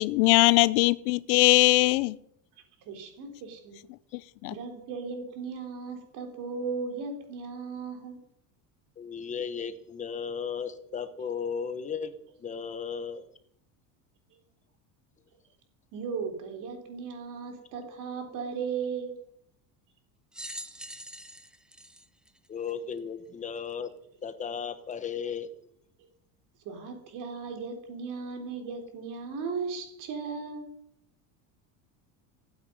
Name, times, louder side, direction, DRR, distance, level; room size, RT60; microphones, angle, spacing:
voice 1, 0.0-2.2 4.1-4.6, left 22 dB, 85° left, 18 dB, 0.7 m, -21 dB
voice 2, 2.8-3.8 4.4-8.2 15.9-19.2 26.0-26.1 26.6-30.7, right 5 dB, 45° right, 5 dB, 3.7 m, -36 dB
voice 3, 9.0-12.1 12.4-13.2 22.5-23.9 24.2-25.5, left 6 dB, 15° left, 11 dB, 1.1 m, -35 dB
sound 1, 20.3-23.0 23.7-23.8 24.9-25.0, right 1 dB, ahead, 0.6 m, -43 dB
15.5 x 9.5 x 9.6 m, 0.73 s
cardioid pair, 170°, 42 cm